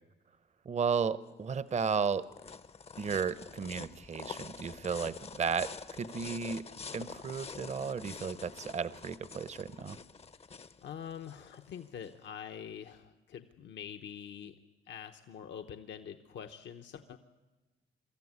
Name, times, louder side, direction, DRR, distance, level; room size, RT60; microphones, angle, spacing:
voice 1, 0.6-2.3 3.0-6.6 6.9-10.0, right 6 dB, 35° right, 16 dB, 0.7 m, -34 dB
sound 1, 1.3-12.1, left 5 dB, 30° left, 0.7 m, -47 dB
voice 2, 10.8-14.5 14.9-17.2, left 8 dB, 65° left, 6 dB, 0.9 m, -45 dB
23.0 x 13.5 x 9.6 m, 1.2 s
cardioid pair, 90°, 20 cm